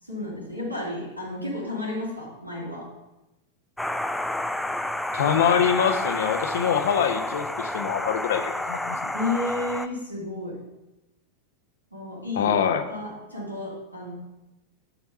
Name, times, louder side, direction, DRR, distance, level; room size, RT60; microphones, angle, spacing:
voice 1, 0.0-2.9 9.1-10.5 11.9-12.5 12.9-14.1, left 2 dB, 85° right, -6 dB, 3.4 m, -32 dB
sound 1, 3.8-9.9, left 1 dB, 5° left, 0.4 m, -30 dB
voice 2, 5.1-9.1 12.4-12.8, left 8 dB, 60° left, 7 dB, 1.0 m, -24 dB
10.0 x 4.7 x 5.8 m, 0.99 s
figure-of-eight pair, 90°, 0 cm